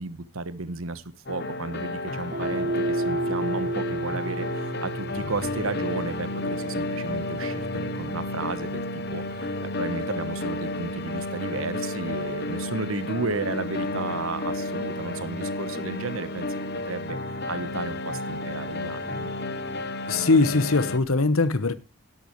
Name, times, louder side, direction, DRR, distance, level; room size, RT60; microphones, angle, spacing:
voice 1, 0.0-16.6 16.9-17.2 17.5-19.3, right 3 dB, 80° right, 1.2 m, -33 dB
sound 1, 1.3-21.0, left 2 dB, 50° left, 1.0 m, -32 dB
sound 2, 2.3-10.8, right 2 dB, 40° right, 2.3 m, -33 dB
voice 2, 20.1-21.7, left 3 dB, 85° left, 1.1 m, -21 dB
13.0 x 11.0 x 3.1 m
head